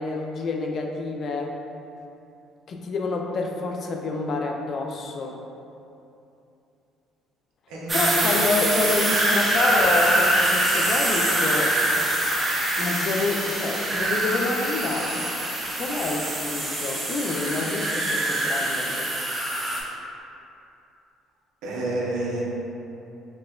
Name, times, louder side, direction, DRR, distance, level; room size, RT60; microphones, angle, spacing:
voice 1, 0.0-1.6 2.7-5.5 7.9-11.8 12.8-15.3 15.8-19.1, left 3 dB, 55° left, 1 dB, 0.3 m, -28 dB
voice 2, 7.7-8.3 21.6-22.4, right 1 dB, 80° right, -3 dB, 0.5 m, -29 dB
sound 1, 7.9-19.8, right 1 dB, 25° right, 0.7 m, -24 dB
4.3 x 2.1 x 2.2 m, 2.8 s
supercardioid pair, 75°, 0 cm